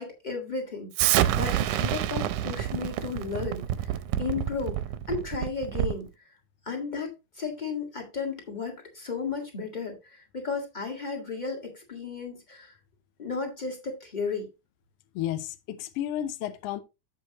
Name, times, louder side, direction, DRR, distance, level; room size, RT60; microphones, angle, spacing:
voice 1, 0.0-3.6 4.2-4.8 5.1-6.1 6.6-7.1 7.4-12.7 13.2-14.5, left 4 dB, 25° left, 1.0 m, -34 dB
Explosion, 0.9-6.1, right 12 dB, 80° right, 1.9 m, -27 dB
voice 2, 15.1-16.8, left 11 dB, 90° left, 1.3 m, -32 dB
7.9 x 7.7 x 2.8 m
omnidirectional pair, 3.8 m